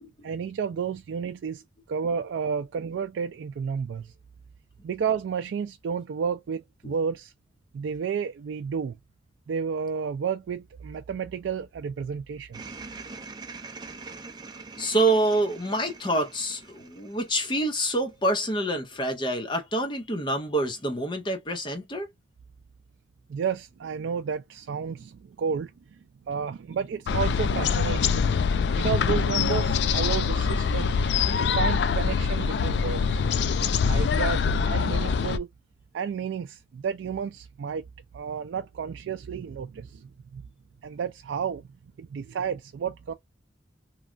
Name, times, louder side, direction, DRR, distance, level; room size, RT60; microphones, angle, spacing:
voice 1, 0.2-1.6 1.9-4.1 4.8-7.3 7.7-9.0 9.5-12.8 23.3-25.7 26.3-33.4 33.8-35.5 35.9-37.8 38.1-40.4 40.8-41.7 42.0-43.1, right 6 dB, 85° right, 0.3 m, -31 dB
sound 1, 12.5-18.0, right 4 dB, 25° right, 0.5 m, -43 dB
voice 2, 14.8-22.1, right 1 dB, 25° left, 0.6 m, -27 dB
sound 2, 27.1-35.4, left 5 dB, 65° left, 0.3 m, -24 dB
3.1 x 2.3 x 2.4 m
head